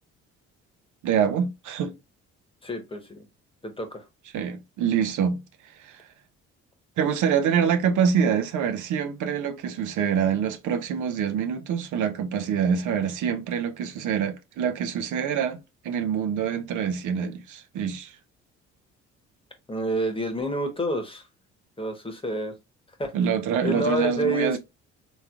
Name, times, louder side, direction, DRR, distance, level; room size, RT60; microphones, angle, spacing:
voice 1, 1.0-2.0 4.3-5.4 5.8-6.1 7.0-18.2 23.1-24.6, right 7 dB, 60° right, 0.6 m, -25 dB
voice 2, 2.6-3.3 3.6-4.0 19.7-21.3 21.8-22.5 23.0-23.1 23.6-24.6, right 1 dB, 15° left, 1.1 m, -28 dB
3.5 x 3.1 x 2.4 m
hypercardioid pair, 55°, 33 cm